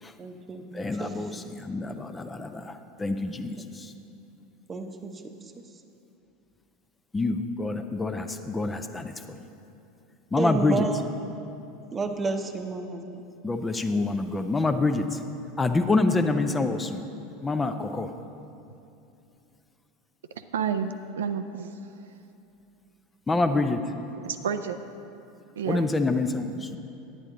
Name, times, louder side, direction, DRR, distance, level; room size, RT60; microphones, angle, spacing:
voice 1, 0.2-1.1 4.7-5.2 10.4-11.0 11.9-13.2, right 4 dB, 25° right, 6 dB, 0.8 m, -31 dB
voice 2, 0.7-3.9 7.1-9.5 10.3-10.9 13.4-15.2 15.6-17.0 17.4-18.1 23.3-23.8 25.6-26.8, left 3 dB, 15° left, 8 dB, 0.5 m, -27 dB
voice 3, 20.5-21.7 24.2-24.8 25.6-25.9, right 7 dB, 75° right, 9 dB, 0.3 m, -30 dB
9.9 x 8.9 x 3.7 m, 2.8 s
hypercardioid pair, 80°, 0 cm